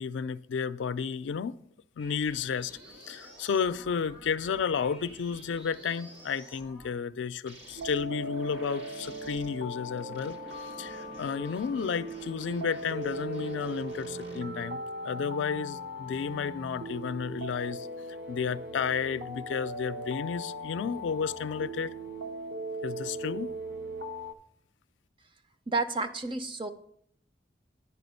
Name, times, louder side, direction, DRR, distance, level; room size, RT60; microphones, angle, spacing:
voice 1, 0.0-1.6 2.0-2.7 3.1-10.4 10.8-14.8 15.0-17.9 18.3-21.9 22.8-23.5, left 6 dB, 90° left, 0.4 m, -32 dB
sound 1, 2.0-6.9 7.5-9.5 10.0-14.4, equal, 85° right, 1.6 m, -50 dB
sound 2, 7.8-24.3, right 1 dB, 65° right, 0.9 m, -39 dB
voice 2, 25.7-26.7, right 3 dB, 25° right, 0.5 m, -30 dB
9.7 x 5.0 x 5.4 m
head